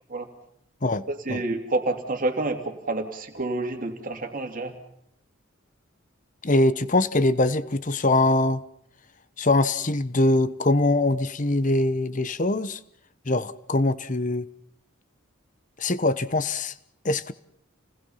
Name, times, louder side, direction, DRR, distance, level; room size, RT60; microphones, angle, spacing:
voice 1, 1.1-4.8, right 2 dB, 40° right, 2.8 m, -28 dB
voice 2, 6.4-8.6 9.4-12.8 13.3-14.5 15.8-16.7 17.0-17.3, left 2 dB, 35° left, 1.0 m, -23 dB
29.0 x 20.0 x 5.7 m
head